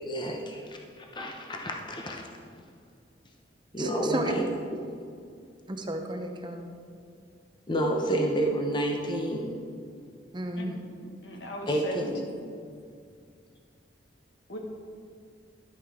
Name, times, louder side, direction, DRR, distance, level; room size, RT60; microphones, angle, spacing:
voice 1, 0.0-2.3 3.7-4.4 7.7-9.6 11.7-12.2, right 1 dB, 25° left, 1 dB, 0.8 m, -29 dB
voice 2, 3.8-4.3 5.7-6.7 10.3-10.8, right 1 dB, 25° right, 4 dB, 0.8 m, -33 dB
voice 3, 11.2-12.5 14.5-14.6, left 1 dB, 70° left, 1 dB, 1.7 m, -38 dB
12.0 x 9.0 x 3.7 m, 2.3 s
head